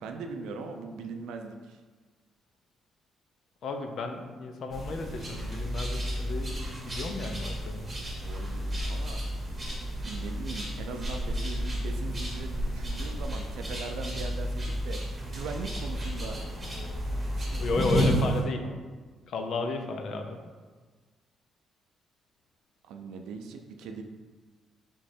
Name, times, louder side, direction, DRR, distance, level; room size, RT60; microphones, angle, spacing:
voice 1, 0.0-1.8 8.2-9.2 10.0-15.0 15.3-16.4 17.3-18.8 22.8-24.0, right 4 dB, 90° right, 5 dB, 0.4 m, -40 dB
voice 2, 3.6-7.9 17.6-18.6 19.3-20.4, left 3 dB, 65° left, 5 dB, 0.5 m, -33 dB
sound 1, 4.7-18.4, equal, 20° right, 1.3 m, -32 dB
3.6 x 3.1 x 4.3 m, 1.4 s
cardioid pair, 90°, 0 cm